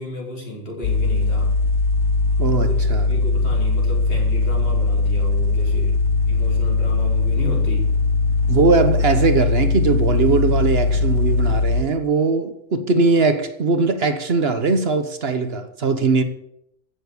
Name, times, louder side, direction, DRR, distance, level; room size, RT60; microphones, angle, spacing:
voice 1, 0.0-1.5 2.6-6.0 6.3-7.9, equal, 55° left, 4.8 m, -33 dB
sound 1, 0.8-11.8, left 3 dB, 90° left, 1.2 m, -20 dB
voice 2, 2.4-3.1 8.5-16.2, right 4 dB, 60° right, 1.3 m, -20 dB
15.5 x 7.1 x 8.1 m
omnidirectional pair, 1.2 m